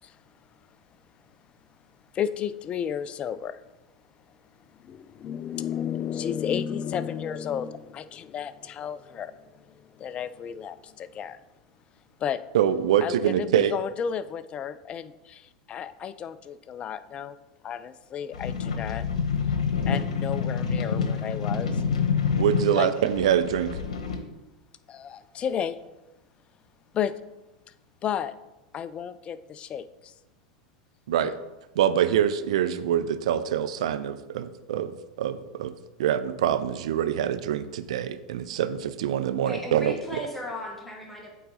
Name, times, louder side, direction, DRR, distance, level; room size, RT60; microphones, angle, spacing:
voice 1, 2.1-3.6 4.7-11.4 12.2-12.4 13.0-17.4 17.6-19.1 19.5-19.6 19.9-21.8 22.7-22.9 24.9-25.8 26.9-27.1 28.0-28.4 28.7-30.1 31.2-31.4, left 8 dB, 30° left, 14 dB, 0.4 m, -33 dB
voice 2, 12.5-13.7 22.4-23.8 31.1-31.3 31.8-34.9 35.2-35.7 36.0-39.9, right 10 dB, 70° right, 12 dB, 0.5 m, -25 dB
sound 1, 18.3-24.2, left 6 dB, 75° left, 1.0 m, -27 dB
voice 3, 39.4-41.3, equal, 5° left, -1 dB, 1.3 m, -36 dB
8.3 x 3.8 x 4.0 m, 1.0 s
hypercardioid pair, 95°, 4 cm